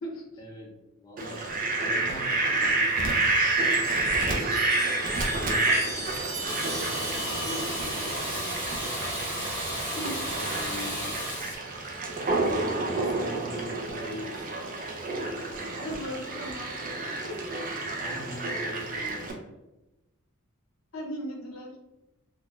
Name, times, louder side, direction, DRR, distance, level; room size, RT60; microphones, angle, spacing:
voice 1, 0.4-0.7 1.0-1.5 1.8-3.1 3.9-4.7 5.3-5.7 6.1-8.8 10.3-11.2 12.8-14.5 18.0-19.5, equal, 20° left, -3 dB, 0.6 m, -42 dB
Fowl, 1.2-19.3, right 2 dB, 40° right, 0.5 m, -29 dB
Chime, 3.2-11.0 12.2-12.8, right 2 dB, 85° right, 0.8 m, -40 dB
Water tap faucet / Bathtub (filling or washing), 6.5-11.6, equal, 25° right, 1.4 m, -33 dB
voice 2, 15.8-17.5 20.9-21.7, equal, 75° left, 1 dB, 0.7 m, -37 dB
3.8 x 2.2 x 2.3 m, 0.97 s
head